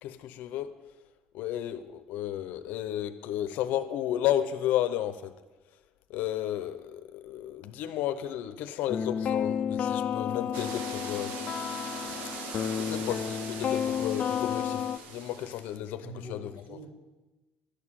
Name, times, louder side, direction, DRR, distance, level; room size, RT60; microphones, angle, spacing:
voice 1, 0.0-0.7 1.3-5.3 6.1-11.3 12.8-16.5, left 11 dB, 75° left, 0.8 m, -33 dB
sound 1, 8.9-15.0, left 8 dB, 40° left, 0.6 m, -31 dB
sound 2, 10.5-15.8, right 5 dB, 75° right, 1.5 m, -41 dB
voice 2, 12.8-13.1 13.6-13.8 15.9-16.9, right 1 dB, 45° right, 4.3 m, -45 dB
12.0 x 6.7 x 9.0 m
cardioid pair, 150°, 3 cm